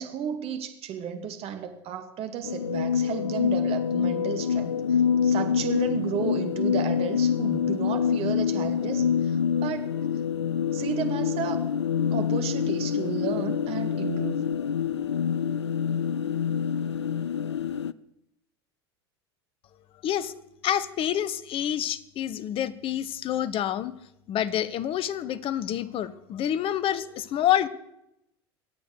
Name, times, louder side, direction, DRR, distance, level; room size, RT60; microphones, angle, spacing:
voice 1, 0.0-9.9 10.7-11.6 12.1-14.4, right 8 dB, 45° right, 7 dB, 2.2 m, -33 dB
sound 1, 2.4-17.9, left 7 dB, 85° left, 0.5 m, -26 dB
voice 2, 20.0-20.3 20.6-24.0 24.3-27.7, left 11 dB, 40° left, 17 dB, 1.2 m, -27 dB
23.0 x 8.7 x 6.4 m, 0.82 s
hypercardioid pair, 80°, 14 cm